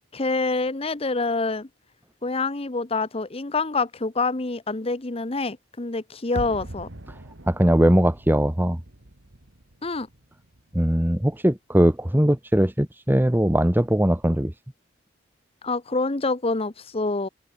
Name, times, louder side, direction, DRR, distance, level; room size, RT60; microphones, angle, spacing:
voice 1, 0.1-1.7 2.2-6.9 9.8-10.1 15.6-17.3, left 3 dB, 30° left, 0.9 m, -26 dB
sound 1, 6.3-11.3 11.5-11.6, right 1 dB, 70° right, 2.4 m, -41 dB
voice 2, 7.5-8.8 10.7-14.5, equal, 10° right, 1.2 m, -20 dB
open air
head